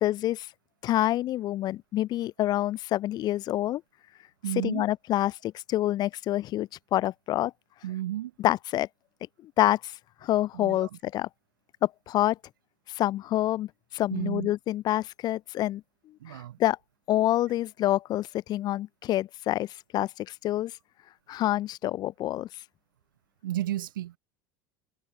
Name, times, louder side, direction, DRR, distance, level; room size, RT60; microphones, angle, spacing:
voice 1, 0.0-0.5 0.8-3.8 4.6-7.5 8.4-8.9 9.4-11.3 11.8-12.4 12.9-15.8 16.3-16.8 17.1-20.7 21.3-22.5, left 14 dB, 40° left, 0.4 m, -27 dB
voice 2, 4.4-4.8 7.8-8.3 10.5-10.9 14.1-14.5 16.2-16.6 23.4-24.2, right 13 dB, 70° right, 0.8 m, -32 dB
figure-of-eight pair, 75°, 11 cm